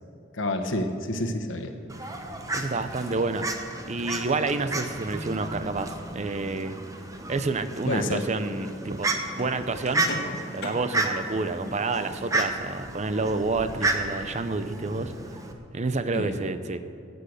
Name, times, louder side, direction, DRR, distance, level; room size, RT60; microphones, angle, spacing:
voice 1, 0.3-1.7 7.9-8.3 10.0-10.2 16.1-16.4, left 1 dB, 70° left, 5 dB, 1.3 m, -29 dB
Fowl, 1.9-15.5, right 2 dB, 15° right, 0.9 m, -32 dB
voice 2, 2.5-3.4 3.9-6.8 7.3-9.1 9.3-10.0 10.5-15.1 15.7-16.8, right 3 dB, 35° right, 11 dB, 0.6 m, -29 dB
sound 1, 7.6-13.9, left 2 dB, 55° left, 1.7 m, -44 dB
16.0 x 7.8 x 6.6 m, 2.7 s
head